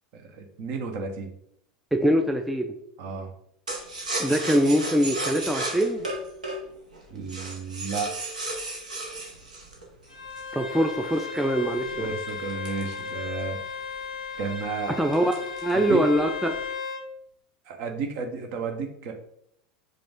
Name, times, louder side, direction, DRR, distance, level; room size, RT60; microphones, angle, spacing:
voice 1, 0.1-1.3 3.0-3.3 7.1-8.1 12.0-13.6 14.4-15.0 15.7-16.1 17.7-19.1, right 5 dB, 45° right, 4 dB, 0.7 m, -32 dB
voice 2, 1.9-2.7 4.2-6.0 10.5-12.1 15.0-15.3 15.6-16.6, equal, 5° right, 4 dB, 0.3 m, -23 dB
sound 1, 3.7-10.6 11.1-13.6 14.0-14.1 14.4-14.7 15.1-15.8 16.2-16.7, right 2 dB, 75° right, 0.9 m, -34 dB
Bowed string instrument, 10.1-17.1, left 5 dB, 90° left, 0.6 m, -35 dB
4.8 x 2.4 x 3.5 m, 0.71 s
figure-of-eight pair, 80°, 4 cm